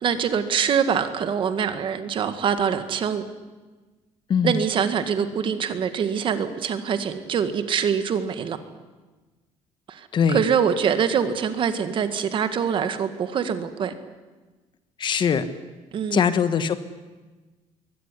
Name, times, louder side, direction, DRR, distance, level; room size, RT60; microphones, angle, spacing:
voice 1, 0.0-3.2 4.4-8.6 9.9-13.9 15.9-16.3, right 7 dB, 45° right, 10 dB, 1.9 m, -24 dB
voice 2, 15.0-15.5 16.1-16.8, left 7 dB, 40° left, 12 dB, 1.3 m, -21 dB
22.5 x 17.5 x 10.0 m, 1.2 s
cardioid pair, 160°, 12 cm